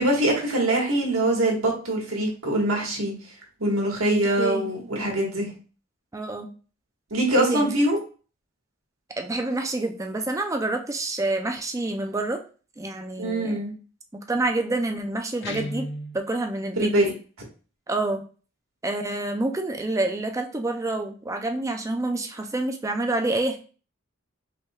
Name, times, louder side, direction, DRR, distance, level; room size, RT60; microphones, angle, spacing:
voice 1, 0.0-3.1 3.6-5.5 7.1-8.0 13.2-13.7 16.8-17.1, right 1 dB, 90° right, -1 dB, 1.5 m, -23 dB
voice 2, 4.4-4.7 6.1-6.5 7.4-7.7 9.2-12.4 12.8-13.6 14.3-15.9 16.1-16.9 17.9-18.2 18.8-23.6, right 2 dB, 15° right, 4 dB, 0.4 m, -27 dB
Guitar, 15.4-16.2, equal, 55° left, 0.6 m, -33 dB
5.3 x 3.5 x 2.3 m, 0.38 s
head